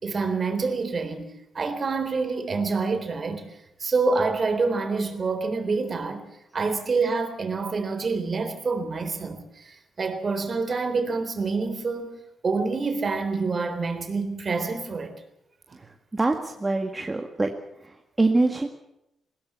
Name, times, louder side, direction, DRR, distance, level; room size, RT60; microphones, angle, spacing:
voice 1, 0.0-3.5 3.8-12.1 12.4-15.1 15.7-15.8, right 4 dB, 45° right, 3.9 m, -27 dB
voice 2, 16.1-17.5 17.8-18.7, right 2 dB, 25° right, 1.9 m, -24 dB
21.0 x 17.0 x 8.5 m
hypercardioid pair, 40°, 0 cm